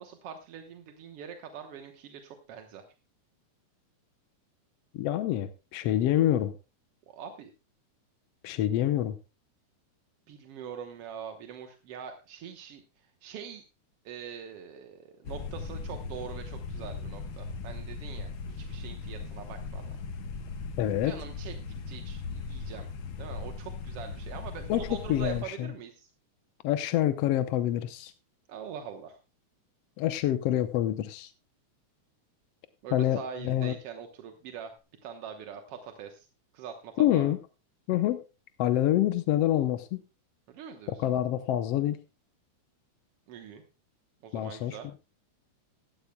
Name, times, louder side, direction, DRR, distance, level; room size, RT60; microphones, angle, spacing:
voice 1, 0.0-2.8 7.1-7.5 10.3-13.7 14.1-20.0 21.0-21.5 21.9-22.9 23.2-26.1 28.5-29.2 32.8-34.8 35.0-36.3 36.5-37.3 40.5-41.1 43.3-43.6 44.2-44.9, right 7 dB, 60° right, 5 dB, 1.8 m, -43 dB
voice 2, 4.9-6.5 8.4-9.2 20.8-21.1 24.7-25.7 26.6-28.1 30.0-31.3 32.9-33.7 37.0-37.4 37.9-38.2 38.6-40.0 41.0-42.0 44.3-45.0, left 12 dB, 70° left, 10 dB, 1.6 m, -27 dB
sound 1, 15.2-25.4, left 4 dB, 55° left, 1.5 m, -38 dB
17.0 x 13.0 x 2.2 m, 0.30 s
omnidirectional pair, 3.5 m